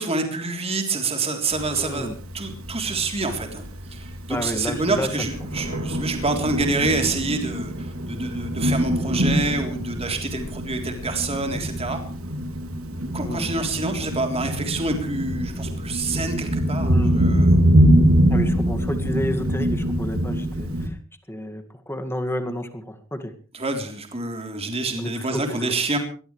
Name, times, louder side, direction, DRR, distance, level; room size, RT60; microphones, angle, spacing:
voice 1, 0.0-2.1 2.3-3.6 3.9-12.0 13.1-17.5 23.5-26.0, right 3 dB, 30° right, 4 dB, 3.6 m, -27 dB
Thunder, 1.5-20.9, equal, 85° right, 3.1 m, -24 dB
voice 2, 1.8-2.1 4.3-5.3 9.0-9.4 13.2-13.5 16.9-17.2 18.3-21.0 21.3-23.3 25.0-25.4, equal, 10° left, 6 dB, 2.1 m, -31 dB
22.5 x 18.5 x 3.3 m, 0.39 s
head